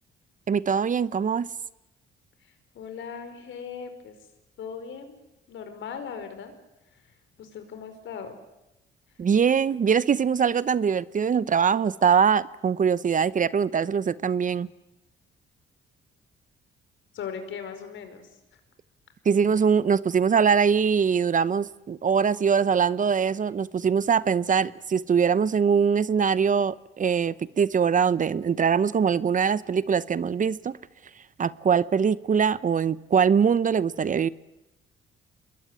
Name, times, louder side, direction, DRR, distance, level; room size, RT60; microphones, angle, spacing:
voice 1, 0.5-1.5 9.2-14.7 19.2-30.8 31.4-34.3, right 6 dB, 40° right, 17 dB, 0.9 m, -22 dB
voice 2, 2.7-4.2 4.6-5.1 5.5-6.5 7.4-8.4 17.1-18.3, left 7 dB, 75° left, 8 dB, 5.0 m, -38 dB
27.0 x 21.5 x 9.7 m, 0.97 s
cardioid pair, 90°, 20 cm